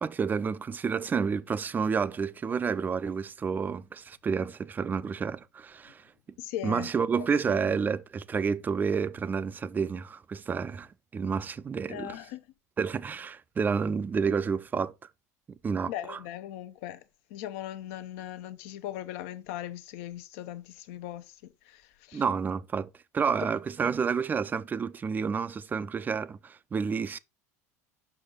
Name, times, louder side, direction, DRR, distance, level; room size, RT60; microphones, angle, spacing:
voice 1, 0.0-6.0 6.6-12.2 12.8-14.9 15.6-16.2 22.1-27.2, right 6 dB, 20° right, 0.4 m, -30 dB
voice 2, 6.4-6.9 7.1-7.8 11.9-12.4 15.9-17.0 17.3-22.2, left 12 dB, 55° left, 0.7 m, -39 dB
5.9 x 4.7 x 3.7 m
figure-of-eight pair, 75°, 9 cm